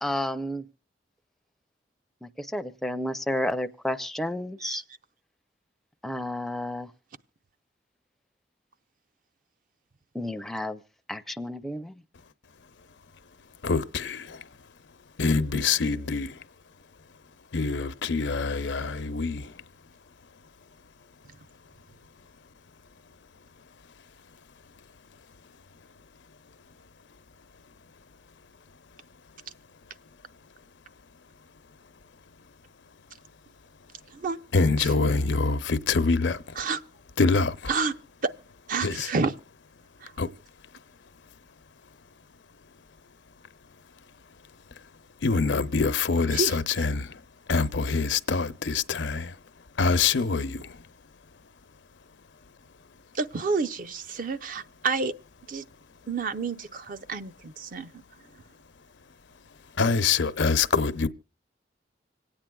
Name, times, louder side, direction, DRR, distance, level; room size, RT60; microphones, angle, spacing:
voice 1, 0.0-0.6 2.2-4.8 6.0-6.9 10.1-10.8 11.1-11.9, left 1 dB, ahead, 0.4 m, -31 dB
voice 2, 13.6-14.5 15.2-16.4 17.5-19.6 34.5-36.6 37.2-37.7 38.8-39.1 40.2-40.3 45.2-47.2 47.5-49.4 49.8-50.8 59.8-61.1, left 4 dB, 90° left, 0.7 m, -25 dB
voice 3, 38.7-39.3 40.0-40.1 46.3-46.6 53.1-55.1 55.5-55.6 56.1-57.9, right 4 dB, 50° right, 0.6 m, -29 dB
26.0 x 8.8 x 2.3 m
head